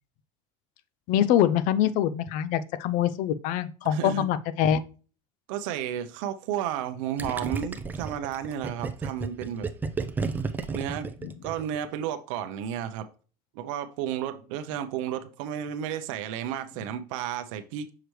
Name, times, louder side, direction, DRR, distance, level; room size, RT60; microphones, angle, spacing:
voice 1, 1.1-4.8 11.2-11.3, left 10 dB, 55° left, 15 dB, 0.5 m, -24 dB
voice 2, 3.8-4.3 5.5-9.7 10.7-11.1 11.4-13.1 13.6-17.9, right 10 dB, 85° right, 8 dB, 0.6 m, -32 dB
Gurgling, 7.2-11.9, right 4 dB, 10° right, 0.4 m, -32 dB
6.4 x 4.8 x 3.1 m, 0.37 s
cardioid pair, 150°, 16 cm